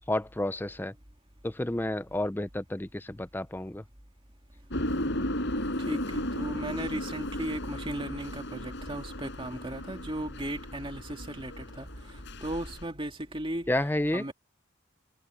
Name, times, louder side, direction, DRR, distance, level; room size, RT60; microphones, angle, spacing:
voice 1, 0.1-0.9 1.4-3.8 13.7-14.3, left 1 dB, 10° left, 0.6 m, -30 dB
sound 1, 4.7-12.8, left 1 dB, 60° left, 6.5 m, -35 dB
voice 2, 5.8-13.7 14.1-14.3, right 1 dB, 25° right, 2.7 m, -36 dB
head